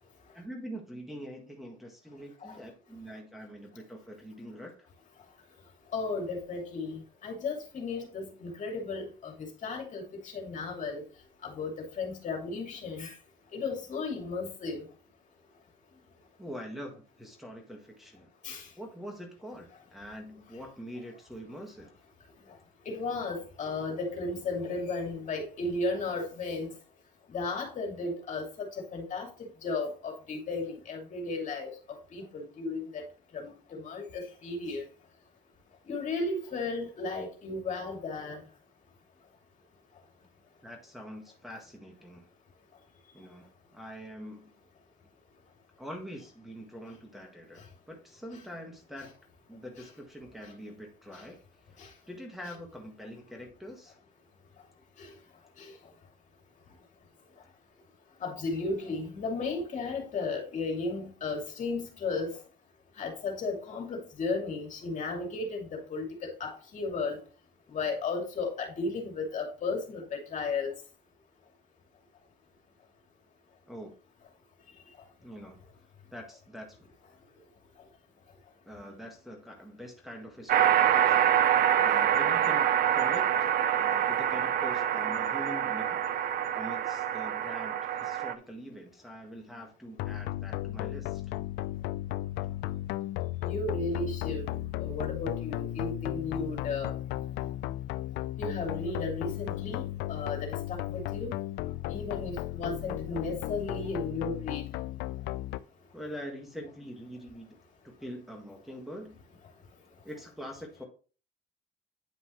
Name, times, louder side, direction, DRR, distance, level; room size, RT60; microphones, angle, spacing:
voice 1, 0.3-4.9 16.4-18.3 18.8-21.9 40.6-42.3 43.1-44.5 45.8-49.1 49.5-51.4 51.8-54.0 73.7-73.9 75.2-75.6 76.1-76.9 78.7-91.2 105.9-107.6 107.8-109.2 110.0-110.8, equal, ahead, 1.7 m, -44 dB
voice 2, 5.9-9.3 9.6-10.0 10.3-11.0 11.4-13.1 13.5-14.8 18.4-18.7 22.9-26.7 27.3-29.3 29.6-31.7 32.1-33.0 33.3-34.8 35.9-38.4 51.8-51.9 55.0-55.1 55.6-55.7 58.2-62.3 63.0-67.2 67.7-70.7 93.4-94.4 94.8-96.9 98.4-99.8 100.1-101.3 101.9-104.6, left 3 dB, 50° left, 2.7 m, -34 dB
sound 1, 80.5-88.3, right 10 dB, 60° right, 0.7 m, -26 dB
sound 2, 90.0-105.6, left 15 dB, 85° left, 0.4 m, -35 dB
9.7 x 5.3 x 3.1 m
cardioid pair, 110°, 17 cm